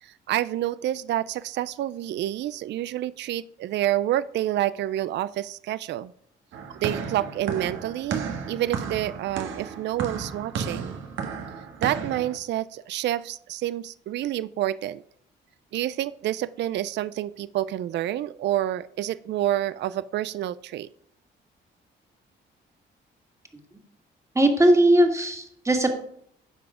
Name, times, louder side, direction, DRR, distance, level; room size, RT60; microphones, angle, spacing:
voice 1, 0.0-6.1 6.8-11.0 11.8-15.0 15.7-20.9, right 13 dB, 60° right, 17 dB, 0.4 m, -28 dB
sound 1, 6.5-12.4, right 6 dB, 80° right, 1.4 m, -33 dB
voice 2, 24.3-25.9, right 1 dB, 15° right, 4 dB, 1.8 m, -19 dB
10.0 x 5.9 x 4.9 m, 0.67 s
cardioid pair, 90°, 20 cm